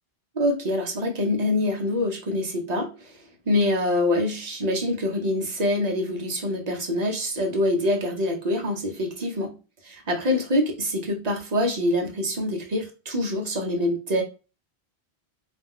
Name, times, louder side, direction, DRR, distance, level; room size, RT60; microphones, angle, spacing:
voice 1, 0.3-9.5 9.8-14.2, left 1 dB, 50° right, 2 dB, 0.6 m, -25 dB
2.4 x 2.1 x 3.5 m, 0.32 s
omnidirectional pair, 1.1 m